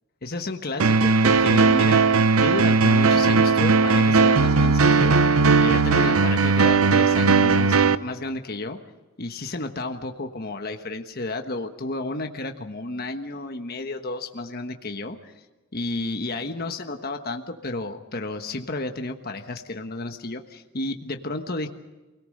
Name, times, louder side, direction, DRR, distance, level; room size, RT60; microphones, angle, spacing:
voice 1, 0.2-5.2 5.6-8.8 9.2-15.3 15.7-21.7, left 2 dB, 45° left, 5 dB, 1.3 m, -32 dB
sound 1, 0.8-8.0, right 4 dB, 75° right, 0.7 m, -18 dB
28.0 x 18.0 x 6.6 m, 1.2 s
head